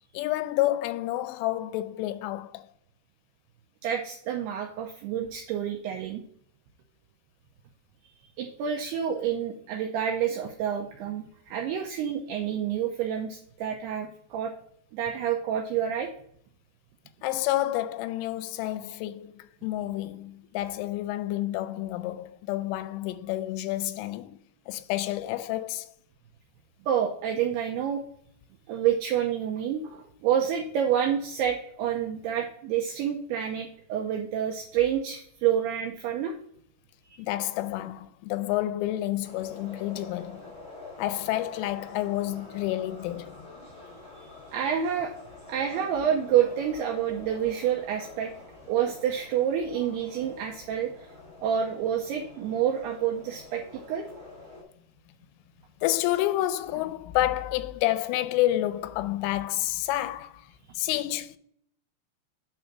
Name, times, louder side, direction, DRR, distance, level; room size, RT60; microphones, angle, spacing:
voice 1, 0.1-2.7 17.2-24.4 24.7-25.9 37.2-40.5 41.0-43.5 55.8-60.4 60.8-61.4, left 15 dB, 85° left, 3.0 m, -29 dB
voice 2, 3.8-6.2 8.4-14.5 14.9-16.1 26.8-28.0 28.7-36.4 44.2-45.1 45.5-48.3 48.7-51.1 51.4-54.1 60.6-60.7, right 9 dB, 85° right, 2.3 m, -28 dB
sound 1, 39.2-54.6, left 2 dB, 10° left, 1.0 m, -47 dB
8.8 x 3.4 x 5.9 m
omnidirectional pair, 5.5 m